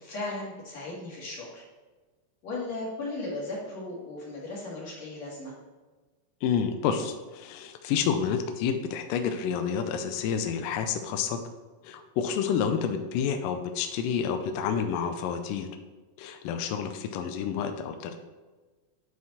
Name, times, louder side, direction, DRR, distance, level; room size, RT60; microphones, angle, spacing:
voice 1, 0.0-1.6 2.4-5.5, left 2 dB, 50° left, -5 dB, 3.0 m, -36 dB
voice 2, 6.4-11.4 11.8-15.7 16.2-18.2, left 7 dB, 80° left, 6 dB, 2.0 m, -29 dB
9.4 x 4.7 x 4.1 m, 1.3 s
omnidirectional pair, 4.4 m